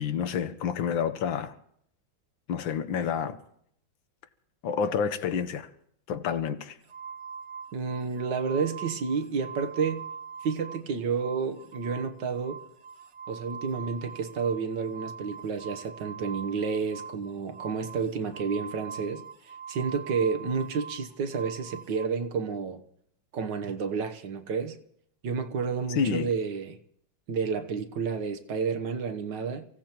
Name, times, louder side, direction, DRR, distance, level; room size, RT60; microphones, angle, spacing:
voice 1, 0.0-1.5 2.5-3.4 4.6-5.7 6.1-6.8 25.9-26.3, left 7 dB, 75° left, 1.7 m, -29 dB
sound 1, 6.9-10.9 11.1-22.1, right 6 dB, 45° right, 1.0 m, -43 dB
voice 2, 7.7-10.1 10.4-12.6 13.3-22.8 23.3-24.8 25.2-26.8 27.3-29.7, right 5 dB, 65° right, 1.7 m, -30 dB
29.5 x 16.5 x 3.0 m
omnidirectional pair, 2.1 m